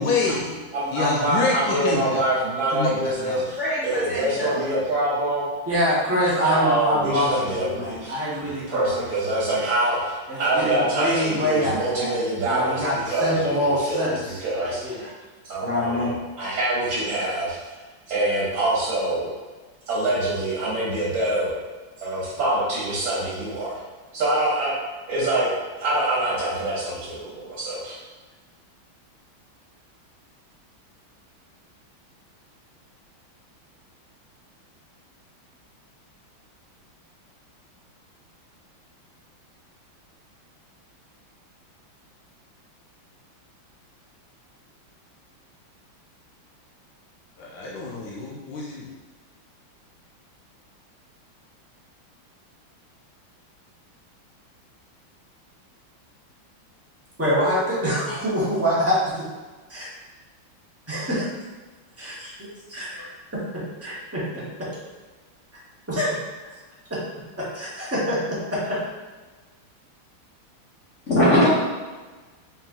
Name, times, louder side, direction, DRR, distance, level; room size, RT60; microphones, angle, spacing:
voice 1, 0.0-0.6 0.9-2.2 2.7-3.5 47.4-48.9, left 3 dB, 70° left, -4 dB, 1.0 m, -27 dB
voice 2, 0.7-5.4 6.4-15.0 15.4-17.6 18.1-19.3 19.9-21.5 22.0-23.8 24.1-24.7 25.1-25.5 25.8-28.0, right 1 dB, 70° right, -8 dB, 1.8 m, -25 dB
voice 3, 3.5-4.7 71.1-71.5, left 1 dB, 40° left, -12 dB, 1.2 m, -21 dB
voice 4, 5.7-9.0 9.3-9.6 10.3-15.1 15.6-16.1 57.2-59.0 59.7-59.8 60.9-61.3 62.0-62.3 62.7-63.1 63.5-64.2 65.9-66.2 66.9-67.0 67.5-68.2 68.5-68.8, equal, 15° right, -8 dB, 0.5 m, -25 dB
4.1 x 3.7 x 2.5 m, 1.3 s
omnidirectional pair, 2.2 m